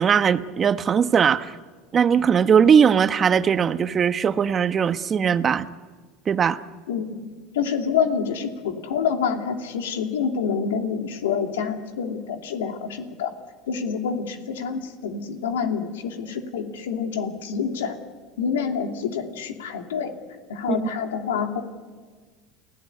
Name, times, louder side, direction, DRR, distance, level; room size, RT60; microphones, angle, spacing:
voice 1, 0.0-1.6 1.9-5.7 6.3-6.6 20.7-20.8, right 7 dB, 35° right, 11 dB, 1.2 m, -19 dB
voice 2, 6.9-7.2 7.5-13.3 13.7-18.0 18.4-20.1 20.5-21.6, left 6 dB, 90° left, 5 dB, 2.7 m, -27 dB
29.5 x 17.0 x 9.6 m, 1.4 s
hypercardioid pair, 90°, 0 cm